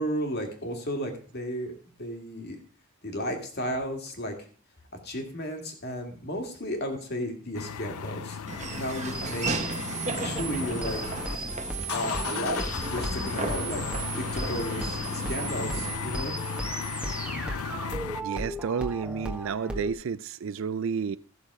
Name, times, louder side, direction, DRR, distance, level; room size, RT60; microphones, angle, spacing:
voice 1, 0.0-1.7 2.0-2.6 3.0-4.3 5.0-9.7 10.2-11.1 11.9-13.8 14.2-16.3, equal, 50° left, 2.1 m, -33 dB
sound 1, 7.5-11.4 11.7-18.2, left 6 dB, 80° left, 0.5 m, -35 dB
Laughter / Walk footsteps, 8.5-16.0, right 3 dB, 35° right, 0.9 m, -35 dB
sound 2, 9.1-19.9, right 2 dB, 5° right, 1.4 m, -36 dB
voice 2, 18.2-21.2, right 6 dB, 60° right, 0.4 m, -31 dB
14.5 x 6.6 x 4.7 m
head